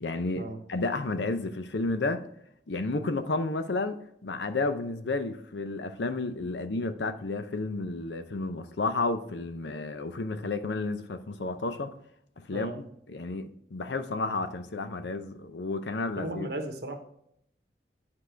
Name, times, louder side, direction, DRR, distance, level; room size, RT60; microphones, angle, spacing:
voice 1, 0.0-2.3 2.7-11.9 12.4-12.7 13.1-16.5, left 3 dB, 85° left, 0.7 m, -31 dB
voice 2, 16.2-17.0, right 1 dB, 70° right, 1.2 m, -35 dB
9.7 x 4.8 x 3.4 m
head